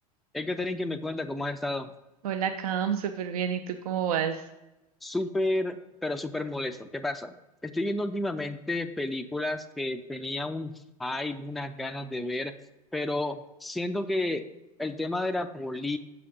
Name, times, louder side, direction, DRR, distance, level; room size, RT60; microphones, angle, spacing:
voice 1, 0.3-1.9 5.0-7.3 7.6-12.5 12.9-14.5 14.8-16.0, left 2 dB, ahead, 7 dB, 0.3 m, -31 dB
voice 2, 2.2-4.4, right 8 dB, 65° right, 8 dB, 0.5 m, -29 dB
6.8 x 5.0 x 5.3 m, 0.98 s
figure-of-eight pair, 85°, 20 cm